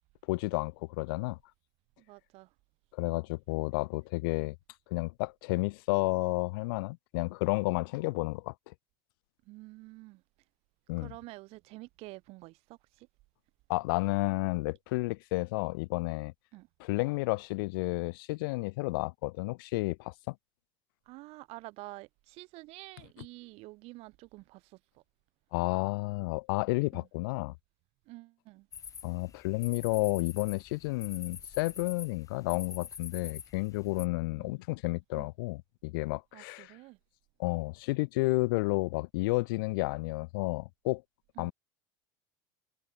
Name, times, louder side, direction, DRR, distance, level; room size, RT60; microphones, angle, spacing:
voice 1, 0.3-1.4 2.9-4.6 4.9-8.7 10.9-11.1 13.7-16.3 16.8-20.3 25.5-27.5 29.0-36.7 37.4-41.0 41.4-41.5, left 24 dB, 75° left, 0.6 m, -31 dB
voice 2, 2.0-2.5 9.5-10.2 11.0-13.1 16.5-16.7 21.1-25.0 26.9-27.1 28.1-28.7 34.3-34.6 35.2-35.3 36.3-37.0 41.4-41.5, right 22 dB, 60° right, 1.9 m, -49 dB
sound 1, 28.7-34.1, left 7 dB, 30° left, 1.1 m, -46 dB
hypercardioid pair, 95°, 12 cm